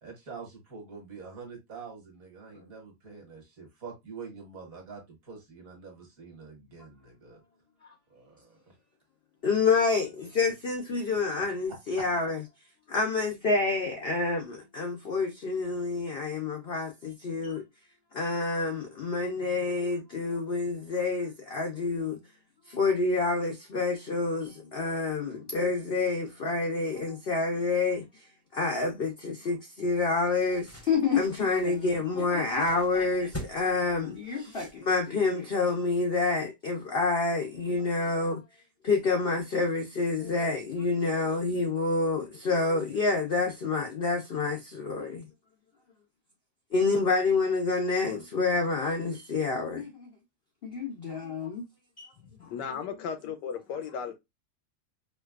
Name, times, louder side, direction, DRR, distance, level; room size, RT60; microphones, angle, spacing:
voice 1, 0.0-7.4 8.1-8.7 10.4-10.5 11.7-12.2, right 5 dB, 55° right, 1.6 m, -45 dB
voice 2, 9.4-12.4 12.9-17.6 18.1-22.2 22.7-28.1 28.5-38.4 38.8-45.3 46.7-50.1 50.6-51.7 52.0-52.1, left 3 dB, 65° left, 0.5 m, -28 dB
sound 1, 29.9-35.3, left 1 dB, 15° left, 0.5 m, -46 dB
voice 3, 52.2-54.1, left 7 dB, 90° left, 1.3 m, -36 dB
4.9 x 2.2 x 2.3 m
omnidirectional pair, 1.8 m